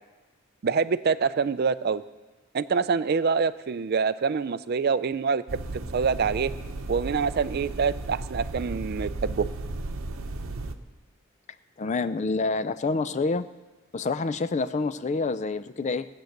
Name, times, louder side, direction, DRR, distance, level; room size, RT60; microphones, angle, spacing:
voice 1, 0.6-2.0 2.5-5.6 5.9-6.5 6.9-9.5, right 5 dB, 50° right, 14 dB, 0.4 m, -25 dB
sound 1, 5.5-10.7, right 2 dB, 80° right, 0.9 m, -35 dB
voice 2, 11.8-13.5 13.9-16.1, left 3 dB, 35° left, 13 dB, 0.4 m, -27 dB
18.5 x 8.0 x 6.5 m, 1.3 s
head